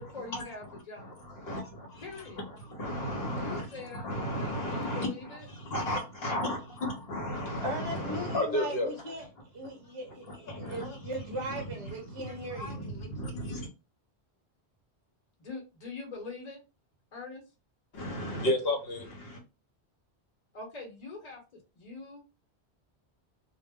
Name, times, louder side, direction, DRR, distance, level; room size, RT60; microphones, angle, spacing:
voice 1, 0.0-1.2 2.0-2.4 3.3-5.5 15.4-16.6 17.1-17.4 20.5-22.2, left 3 dB, 40° left, 1.0 m, -43 dB
voice 2, 1.0-8.9 10.3-13.7 17.9-19.4, left 1 dB, 65° left, 1.0 m, -34 dB
voice 3, 7.6-9.3 9.5-12.8, right 1 dB, 35° right, 0.6 m, -38 dB
2.2 x 2.0 x 3.4 m
omnidirectional pair, 1.1 m